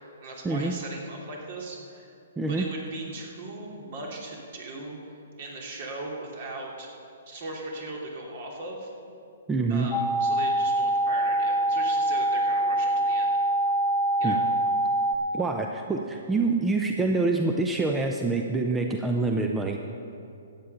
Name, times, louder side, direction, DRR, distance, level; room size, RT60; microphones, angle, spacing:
voice 1, 0.2-2.1 2.5-5.0 5.4-6.9 7.3-8.9 9.7-13.3 14.2-14.4, right 2 dB, 55° right, -1 dB, 2.9 m, -38 dB
voice 2, 2.4-2.7 9.5-9.9 14.2-14.4 15.3-19.8, right 3 dB, 10° right, 2 dB, 0.6 m, -26 dB
sound 1, 9.9-15.2, right 1 dB, 30° left, 0.8 m, -24 dB
14.5 x 8.7 x 5.7 m, 2.6 s
hypercardioid pair, 145°, 0 cm